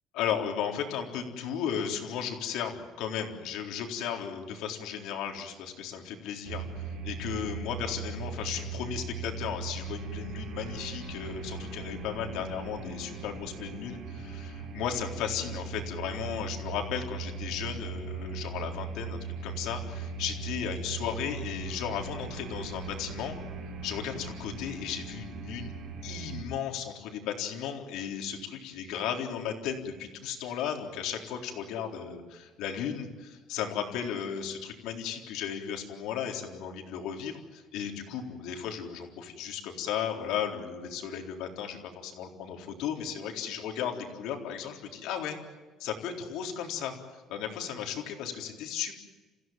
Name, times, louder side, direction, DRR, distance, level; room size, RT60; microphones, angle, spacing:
voice 1, 0.2-23.4 23.8-25.7 26.0-45.4 45.8-49.0, left 8 dB, 75° left, 3 dB, 3.9 m, -35 dB
sound 1, 6.4-26.4, right 4 dB, 60° right, 4.3 m, -39 dB
29.5 x 16.0 x 9.3 m, 1.3 s
cardioid pair, 155°, 0 cm